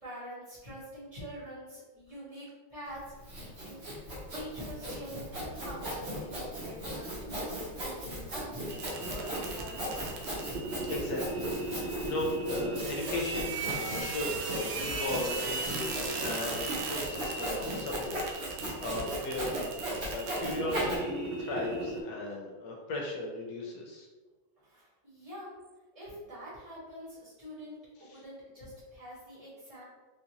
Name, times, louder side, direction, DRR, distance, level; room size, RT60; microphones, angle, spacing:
voice 1, 0.0-3.0 3.3-10.3 24.6-25.5 25.9-29.8, equal, 20° right, -10 dB, 1.1 m, -46 dB
Sawing, 2.9-21.0, equal, 45° right, 1.1 m, -37 dB
sound 1, 8.7-22.0, right 3 dB, 75° right, 1.2 m, -37 dB
voice 2, 10.8-19.6 20.1-24.1 28.0-28.2, left 1 dB, 65° left, -1 dB, 1.1 m, -37 dB
3.8 x 2.5 x 2.8 m, 1.3 s
omnidirectional pair, 2.1 m